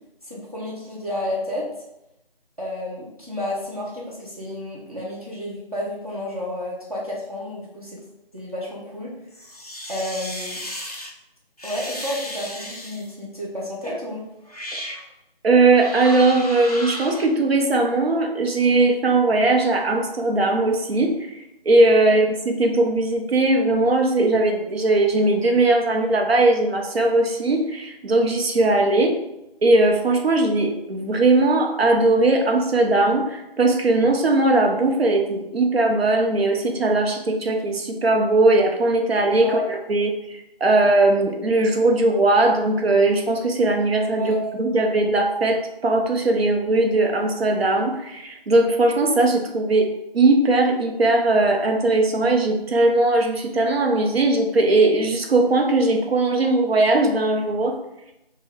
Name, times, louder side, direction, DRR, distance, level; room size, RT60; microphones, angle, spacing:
voice 1, 0.2-1.7 2.6-8.0 8.3-9.1 9.9-10.6 11.6-14.2 22.0-22.1 39.4-39.6 44.2-44.4, left 1 dB, 40° right, -6 dB, 0.6 m, -31 dB
sound 1, 9.3-11.1 11.6-13.1 13.8-14.0 14.5-15.0 15.7-17.2, equal, 40° left, 0.4 m, -34 dB
voice 2, 15.4-29.2 29.6-49.9 50.1-57.8, right 2 dB, 80° right, 2 dB, 0.7 m, -19 dB
2.8 x 2.2 x 3.5 m, 0.89 s
figure-of-eight pair, 175°, 30 cm